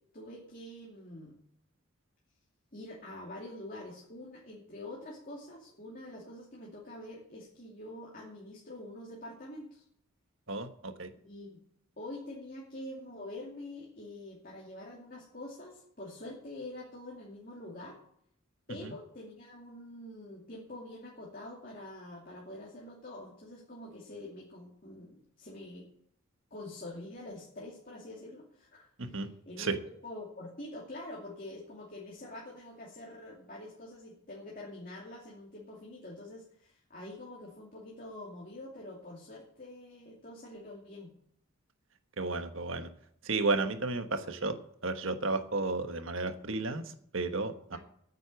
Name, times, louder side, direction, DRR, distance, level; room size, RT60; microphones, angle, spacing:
voice 1, 0.1-1.4 2.7-9.8 11.2-11.6 12.0-18.0 18.7-25.9 26.5-29.7 30.0-41.1 47.7-47.8, left 1 dB, 40° left, -3 dB, 2.7 m, -46 dB
voice 2, 10.5-11.1 29.0-29.3 29.6-29.8 42.2-42.9 43.2-44.6 44.8-47.8, right 3 dB, 70° right, 8 dB, 1.3 m, -33 dB
9.6 x 8.2 x 8.3 m, 0.68 s
head